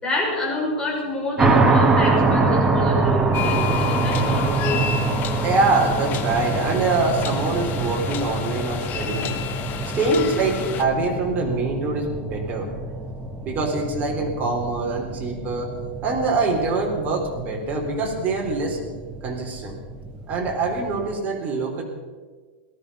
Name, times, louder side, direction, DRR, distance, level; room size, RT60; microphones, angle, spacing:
voice 1, 0.0-4.8, left 2 dB, 15° left, -4 dB, 5.8 m, -27 dB
sound 1, 1.4-21.1, right 3 dB, 10° right, 1.2 m, -25 dB
sound 2, 3.3-10.8, left 9 dB, 30° left, 1.2 m, -31 dB
voice 2, 5.4-9.4 9.9-12.7 13.4-15.7 16.0-18.8 19.2-19.7 20.3-21.8, right 3 dB, 30° right, 0 dB, 3.9 m, -24 dB
18.0 x 13.0 x 5.7 m, 1.5 s
supercardioid pair, 150°, 6 cm